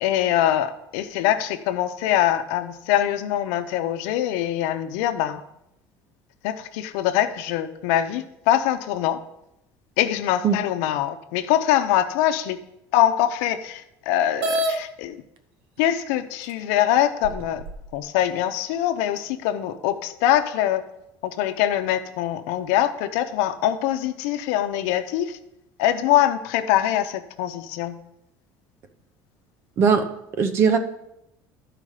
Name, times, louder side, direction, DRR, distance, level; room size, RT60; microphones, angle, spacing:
voice 1, 0.0-5.4 6.4-9.2 10.0-12.6 12.9-15.2 15.8-17.6 17.9-20.8 21.2-25.4 25.8-28.0, left 12 dB, 85° left, 9 dB, 0.8 m, -23 dB
sound 1, 14.4-14.8 15.8-15.9 16.5-16.6 17.2-17.9, right 1 dB, 85° right, 0.9 m, -26 dB
voice 2, 29.8-30.8, right 6 dB, 35° right, 9 dB, 0.8 m, -20 dB
12.5 x 4.9 x 4.9 m, 0.84 s
cardioid pair, 170°, 7 cm